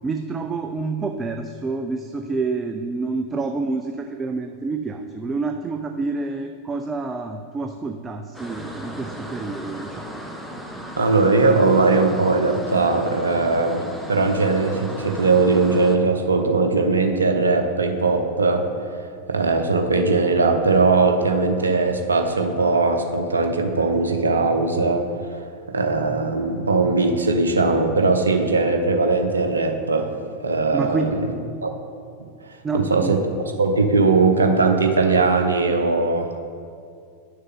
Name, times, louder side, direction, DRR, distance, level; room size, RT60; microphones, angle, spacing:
voice 1, 0.0-10.2 30.7-31.1 32.6-33.1, right 3 dB, 15° right, 5 dB, 0.4 m, -28 dB
sound 1, 8.3-16.0, equal, ahead, 0.8 m, -36 dB
voice 2, 11.0-13.8 14.1-18.7 19.3-25.0 25.7-30.1 30.4-31.3 31.6-31.7 32.7-33.2 33.6-36.4, right 3 dB, 75° right, 5 dB, 0.7 m, -19 dB
10.5 x 6.5 x 3.6 m, 2.3 s
figure-of-eight pair, 90°, 0 cm